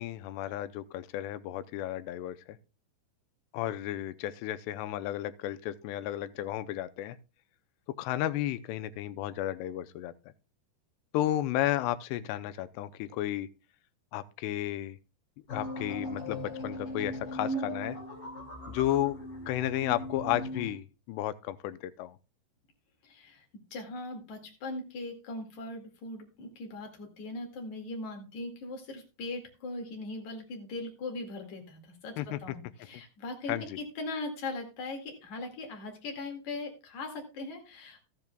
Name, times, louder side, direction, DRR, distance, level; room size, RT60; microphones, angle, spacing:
voice 1, 0.0-2.4 3.5-7.2 8.0-10.1 11.1-13.5 14.1-15.0 15.5-18.0 18.7-19.2 19.5-22.1 32.2-32.4 33.5-33.8, left 13 dB, 85° left, 2.7 m, -33 dB
sound 1, 15.5-20.7, equal, 30° left, 2.6 m, -38 dB
voice 2, 23.0-23.4 23.7-32.1 32.4-38.1, left 2 dB, 50° left, 3.0 m, -40 dB
13.5 x 10.5 x 2.3 m
omnidirectional pair, 4.8 m